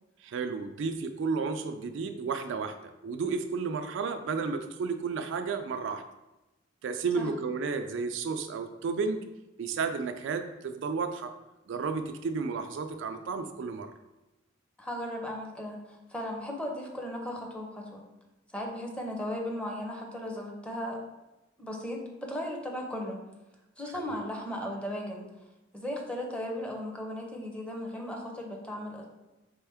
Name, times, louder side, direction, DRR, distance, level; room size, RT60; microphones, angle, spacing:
voice 1, 0.2-6.0 6.8-9.2 9.6-11.3 11.7-13.9 23.9-24.2, right 5 dB, 65° right, 7 dB, 0.3 m, -32 dB
voice 2, 14.8-18.0 18.5-21.0 21.6-23.2 23.8-25.2 25.7-29.0, left 1 dB, 5° left, 0 dB, 0.7 m, -36 dB
4.4 x 3.3 x 3.5 m, 0.99 s
head